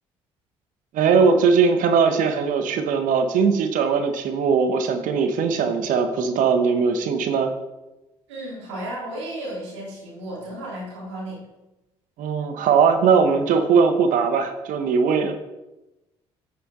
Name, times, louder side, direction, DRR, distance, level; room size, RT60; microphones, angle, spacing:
voice 1, 0.9-7.5 12.2-15.3, right 5 dB, 65° right, 7 dB, 1.1 m, -20 dB
voice 2, 8.3-11.4, right 1 dB, 90° right, -5 dB, 2.6 m, -34 dB
8.6 x 7.4 x 3.8 m, 1.0 s
hypercardioid pair, 50°, 15 cm